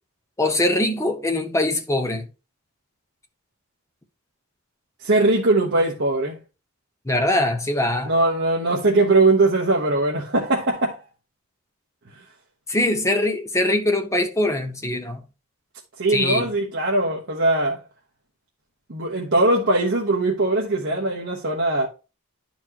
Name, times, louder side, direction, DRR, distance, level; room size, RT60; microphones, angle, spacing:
voice 1, 0.4-2.3 7.1-8.1 12.7-15.2 16.1-16.5, left 1 dB, 15° left, 1.0 m, -22 dB
voice 2, 5.0-6.4 8.0-11.0 12.1-12.2 16.0-17.8 18.9-21.9, right 2 dB, 55° right, 1.1 m, -20 dB
11.0 x 4.4 x 2.9 m
head